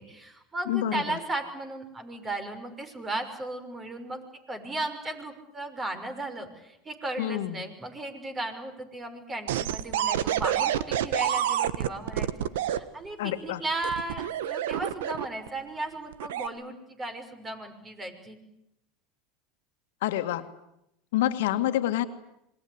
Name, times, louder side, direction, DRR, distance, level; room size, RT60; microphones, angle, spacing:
voice 1, 0.0-4.2 4.5-18.4, right 2 dB, 25° right, 8 dB, 6.0 m, -36 dB
voice 2, 0.7-1.2 7.2-7.6 13.2-13.6 20.0-20.5 21.1-22.1, left 13 dB, 75° left, 8 dB, 1.9 m, -27 dB
sound 1, 9.5-12.8 13.8-15.5 16.1-16.5, right 11 dB, 80° right, 1.3 m, -28 dB
26.5 x 21.5 x 9.7 m, 0.82 s
hypercardioid pair, 95°, 0 cm